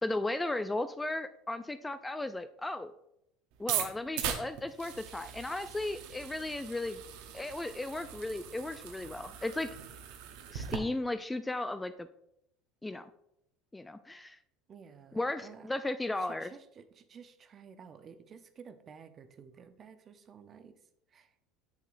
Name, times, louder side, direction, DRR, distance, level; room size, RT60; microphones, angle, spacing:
voice 1, 0.0-2.9 3.6-7.0 7.3-9.7 10.5-12.1 12.8-13.1 13.7-14.4 15.1-16.5, left 2 dB, 10° left, 12 dB, 0.3 m, -35 dB
sound 1, 3.6-10.8, right 9 dB, 70° right, 0.8 m, -40 dB
voice 2, 14.7-15.7 16.2-20.8 21.1-21.3, right 6 dB, 40° right, 10 dB, 0.7 m, -52 dB
8.1 x 6.6 x 2.5 m, 0.79 s
hypercardioid pair, 85°, 0 cm